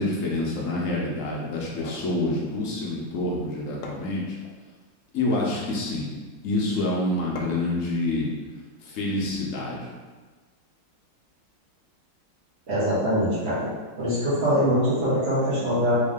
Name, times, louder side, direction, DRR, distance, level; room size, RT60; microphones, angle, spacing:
voice 1, 0.0-4.4 5.1-6.1 6.4-8.3 8.8-9.9, left 2 dB, 60° left, -3 dB, 0.9 m, -27 dB
sound 1, 1.7-2.1 3.4-3.5 3.8-4.6 5.3-5.7 7.4-7.8, left 3 dB, 85° left, 1.3 m, -41 dB
voice 2, 12.7-13.7 14.0-15.9, equal, 40° right, -11 dB, 1.1 m, -23 dB
3.6 x 2.7 x 3.5 m, 1.3 s
omnidirectional pair, 2.0 m